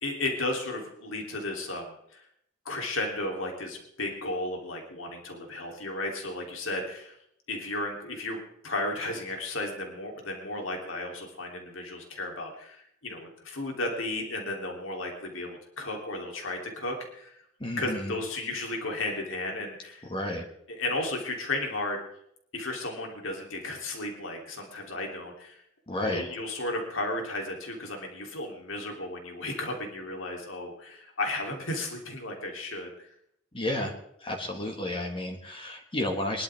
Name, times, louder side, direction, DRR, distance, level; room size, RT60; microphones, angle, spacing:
voice 1, 0.0-2.2 2.6-7.2 7.5-8.4 8.6-17.4 17.8-20.1 20.7-22.0 22.5-25.6 26.1-32.9, left 2 dB, 85° left, 1 dB, 3.2 m, -34 dB
voice 2, 17.6-18.1 20.1-20.4 25.9-26.2 33.5-33.9 34.2-36.4, left 1 dB, 25° left, 2 dB, 1.7 m, -31 dB
22.5 x 12.0 x 3.5 m, 0.72 s
head